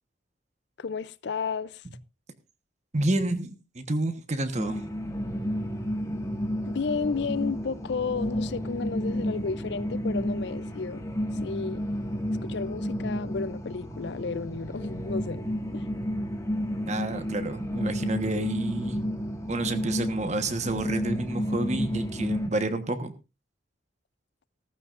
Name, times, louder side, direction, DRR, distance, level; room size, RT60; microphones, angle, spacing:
voice 1, 0.8-1.8 6.7-11.1 11.4-11.8 12.4-15.4 15.7-15.9, left 5 dB, 60° left, 0.5 m, -32 dB
voice 2, 2.9-4.8 16.9-19.0 19.5-23.1, right 2 dB, 35° right, 1.2 m, -29 dB
sound 1, 4.6-22.5, equal, 15° left, 1.8 m, -31 dB
15.5 x 14.5 x 2.5 m
head